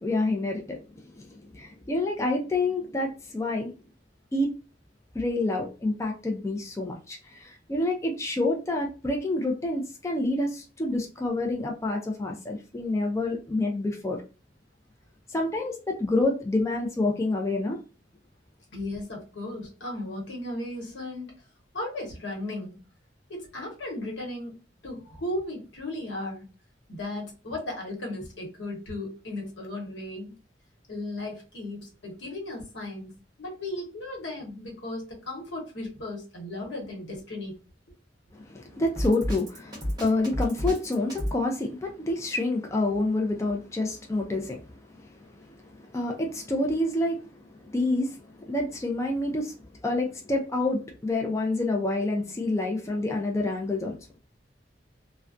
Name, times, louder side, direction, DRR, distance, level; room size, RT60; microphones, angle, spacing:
voice 1, 0.0-3.7 4.3-4.5 5.1-14.2 15.3-17.8 38.3-49.6 49.8-54.0, left 2 dB, 15° left, 0.3 m, -28 dB
voice 2, 18.7-21.3 21.7-22.8 23.3-26.5 26.9-30.3 30.9-33.1 33.4-37.5, left 1 dB, 90° left, 1.0 m, -36 dB
Drum kit, 39.0-41.4, equal, 20° right, 0.8 m, -30 dB
2.3 x 2.1 x 2.5 m
head